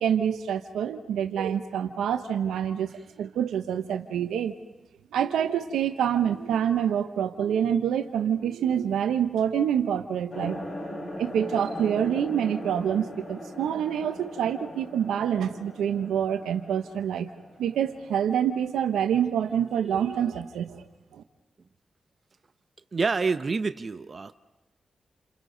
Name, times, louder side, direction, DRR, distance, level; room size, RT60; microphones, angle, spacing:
voice 1, 0.0-2.9 3.2-4.5 5.1-10.6 11.2-17.3 17.6-20.8 21.1-21.2, right 9 dB, 90° right, 8 dB, 1.0 m, -26 dB
sound 1, 10.3-18.2, left 1 dB, 65° left, 4.6 m, -40 dB
voice 2, 22.9-24.4, right 4 dB, 50° right, 10 dB, 0.8 m, -27 dB
29.5 x 29.0 x 4.0 m, 1.1 s
supercardioid pair, 45°, 0 cm